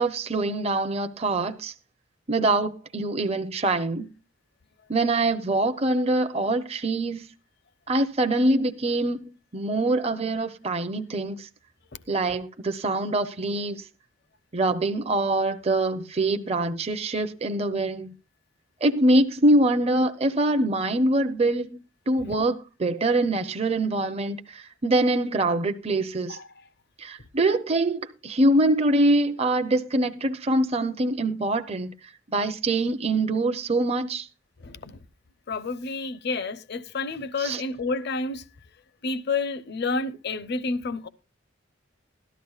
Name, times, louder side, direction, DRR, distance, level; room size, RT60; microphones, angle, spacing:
voice 1, 0.0-1.7 2.3-4.1 4.9-7.3 7.9-11.5 12.1-13.8 14.5-18.1 18.8-26.4 27.0-31.9 32.3-34.3 37.4-37.6, right 2 dB, 30° right, 0.7 m, -24 dB
voice 2, 34.6-35.0 35.5-38.4 39.0-41.1, left 3 dB, 55° left, 0.7 m, -30 dB
17.5 x 13.0 x 2.4 m
head